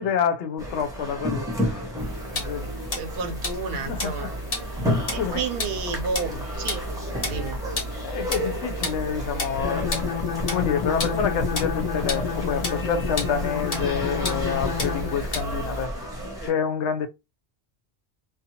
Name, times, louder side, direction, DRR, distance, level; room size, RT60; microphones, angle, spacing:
voice 1, 0.0-1.9 2.3-2.7 3.7-4.3 4.6-4.7 5.2-5.4 6.3-6.4 8.0-15.9 16.4-17.1, left 7 dB, 85° left, 0.9 m, -28 dB
sound 1, 0.6-16.5, equal, 5° right, 0.7 m, -33 dB
sound 2, 2.0-15.9, left 1 dB, 35° left, 0.9 m, -33 dB
voice 2, 2.9-4.3 5.1-6.8 7.3-7.6, right 4 dB, 65° right, 0.7 m, -31 dB
sound 3, 9.6-15.3, left 6 dB, 55° left, 0.5 m, -29 dB
2.6 x 2.2 x 2.7 m
omnidirectional pair, 1.1 m